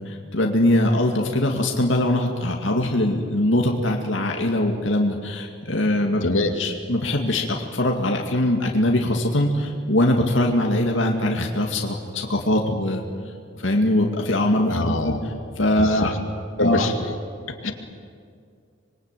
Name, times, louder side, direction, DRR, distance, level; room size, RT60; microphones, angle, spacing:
voice 1, 0.0-6.3 6.6-7.5 7.7-13.0 13.5-16.1 16.6-16.9 17.6-17.7, left 1 dB, 70° left, 1 dB, 2.3 m, -22 dB
voice 2, 6.2-6.5 14.7-15.2 15.8-16.1 16.6-16.9 17.5-17.7, left 2 dB, 85° left, 4 dB, 2.6 m, -24 dB
26.0 x 22.5 x 9.1 m, 2.2 s
head